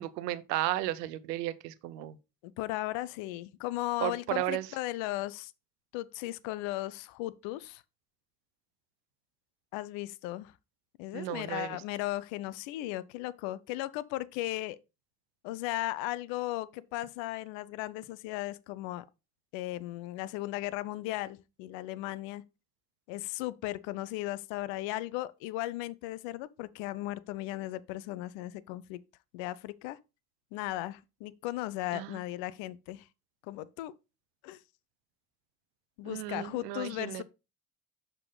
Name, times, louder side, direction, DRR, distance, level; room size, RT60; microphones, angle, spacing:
voice 1, 0.0-2.2 4.0-4.7 11.1-11.8 31.9-32.2 36.0-37.2, right 14 dB, 85° right, 0.6 m, -34 dB
voice 2, 2.4-5.5 5.9-7.8 9.7-10.5 11.0-14.8 15.4-19.0 19.5-22.4 23.1-29.0 29.3-30.0 30.5-33.1 33.5-33.9 34.4-34.6 36.0-37.2, left 16 dB, 70° left, 0.6 m, -36 dB
6.6 x 6.0 x 3.9 m
hypercardioid pair, 45°, 47 cm